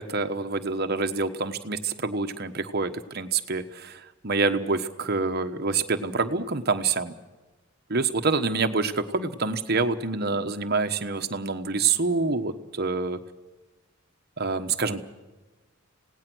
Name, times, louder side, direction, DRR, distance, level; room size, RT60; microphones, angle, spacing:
voice 1, 0.0-7.1 7.9-13.2 14.4-15.0, right 4 dB, 50° right, 7 dB, 1.3 m, -27 dB
26.5 x 18.0 x 6.3 m, 1.2 s
head